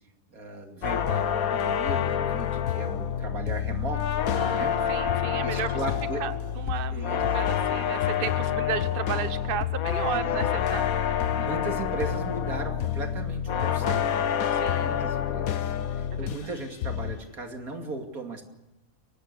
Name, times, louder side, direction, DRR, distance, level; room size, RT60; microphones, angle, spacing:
voice 1, 0.3-4.2 4.5-4.7 5.4-6.2 6.9-7.2 10.1-10.4 11.4-14.2 14.8-18.4, right 2 dB, 90° right, 4 dB, 3.0 m, -36 dB
sound 1, 0.8-16.5 16.8-17.3, left 9 dB, 80° left, 1.4 m, -27 dB
voice 2, 4.4-5.8 6.2-11.5 14.5-14.9, right 8 dB, 45° right, 11 dB, 1.1 m, -34 dB
23.5 x 18.5 x 6.8 m, 1.0 s
omnidirectional pair, 1.5 m